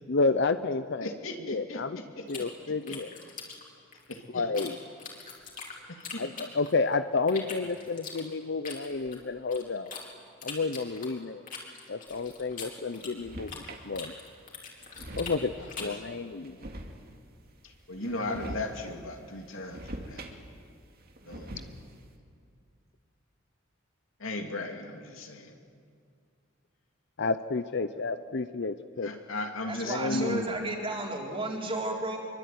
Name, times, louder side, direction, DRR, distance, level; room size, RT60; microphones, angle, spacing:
voice 1, 0.1-1.1 1.4-2.0 2.3-3.2 4.3-4.8 6.2-9.9 10.4-11.5 11.9-14.1 15.1-15.5 15.8-16.6 27.2-29.1 29.8-30.5, left 3 dB, 55° left, 11 dB, 0.7 m, -30 dB
voice 2, 1.0-1.8 2.2-2.3 4.1-4.4 5.6-6.2 15.6-15.9 17.6-20.2 21.3-21.6 24.2-25.5 29.0-30.4, left 2 dB, 70° left, 4 dB, 3.0 m, -37 dB
sound 1, 2.3-4.7 5.0-6.9 7.3-10.0 10.4-13.7 13.9-16.0, left 5 dB, 40° left, 4.6 m, -42 dB
sound 2, 12.9-13.9 14.4-14.5 14.7-15.7 16.4-17.4 17.9-18.9 19.2-20.7 21.0-22.0, right 1 dB, 45° right, 2.4 m, -43 dB
voice 3, 29.7-32.2, right 2 dB, 25° right, 0 dB, 4.1 m, -33 dB
27.0 x 23.5 x 9.4 m, 2.2 s
head